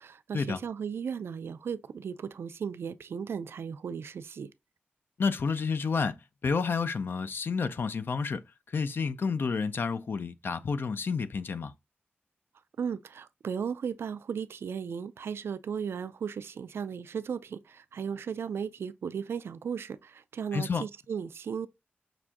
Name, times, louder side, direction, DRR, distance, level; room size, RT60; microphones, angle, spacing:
voice 1, 0.0-4.5 12.8-21.7, right 7 dB, 90° right, 0.3 m, -36 dB
voice 2, 5.2-11.7 20.5-20.8, left 5 dB, 65° left, 0.4 m, -30 dB
5.9 x 2.5 x 2.2 m
wide cardioid pair, 85°, 4 cm